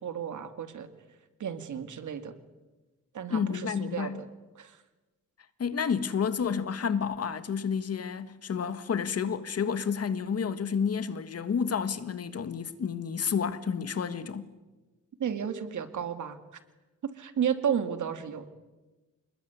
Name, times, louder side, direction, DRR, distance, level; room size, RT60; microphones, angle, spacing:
voice 1, 0.0-0.9 1.4-2.3 3.1-4.1 4.6-4.8 15.2-16.4 17.0-18.5, right 8 dB, 75° right, 2.4 m, -32 dB
voice 2, 3.3-4.2 5.6-14.5, left 6 dB, 50° left, 1.5 m, -30 dB
27.5 x 20.0 x 9.6 m
wide cardioid pair, 155°, 30 cm